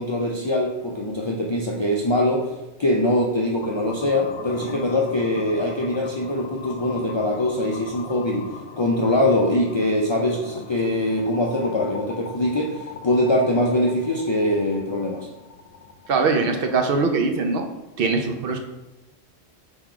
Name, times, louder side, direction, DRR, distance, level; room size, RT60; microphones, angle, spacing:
voice 1, 0.0-2.5 2.8-8.5 8.8-15.3, left 1 dB, 50° left, -2 dB, 0.3 m, -23 dB
sound 1, 3.6-17.6, left 4 dB, 70° left, 0.8 m, -40 dB
voice 2, 16.1-17.6 18.0-18.6, right 4 dB, 65° right, 4 dB, 0.8 m, -21 dB
3.8 x 2.9 x 4.8 m, 1.0 s
omnidirectional pair, 1.1 m